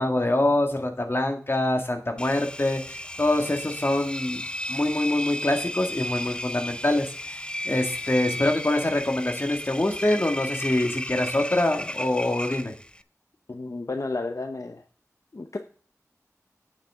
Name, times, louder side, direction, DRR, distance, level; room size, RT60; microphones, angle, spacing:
voice 1, 0.0-4.4 4.7-12.7, left 1 dB, 45° left, 3 dB, 2.1 m, -25 dB
Engine, 2.2-13.0, left 1 dB, 15° left, 0.5 m, -34 dB
voice 2, 13.5-14.8 15.3-15.6, left 3 dB, 70° left, 5 dB, 0.8 m, -32 dB
9.3 x 8.7 x 3.7 m, 0.43 s
wide cardioid pair, 50°, 6 cm